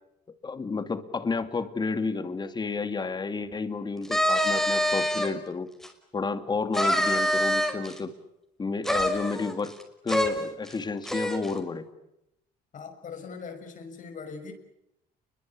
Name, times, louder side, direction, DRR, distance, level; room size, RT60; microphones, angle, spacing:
voice 1, 0.4-5.7 6.1-8.1 8.6-9.7 10.0-11.9, left 4 dB, 25° left, 9 dB, 2.5 m, -31 dB
sound 1, 4.0-5.3 5.8-5.9 6.7-8.0 8.8-9.8 10.1-10.3 10.7-10.8 11.0-11.5, equal, ahead, 5.6 m, -25 dB
voice 2, 12.7-14.5, left 5 dB, 50° left, 7 dB, 6.5 m, -40 dB
29.5 x 22.5 x 8.6 m, 0.84 s
cardioid pair, 110°, 17 cm